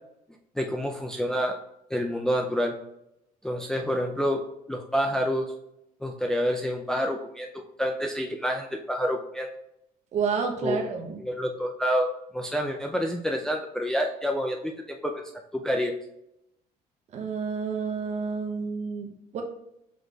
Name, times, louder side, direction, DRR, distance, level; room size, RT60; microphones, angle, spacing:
voice 1, 0.6-1.6 1.9-2.8 3.4-5.5 6.0-9.5 10.6-10.8 11.2-12.1 12.3-15.2 15.5-15.9, equal, 5° left, 2 dB, 0.4 m, -28 dB
voice 2, 10.1-11.2 17.1-19.4, right 5 dB, 50° right, 2 dB, 0.7 m, -30 dB
4.9 x 4.0 x 2.3 m, 0.82 s
cardioid pair, 130°, 15 cm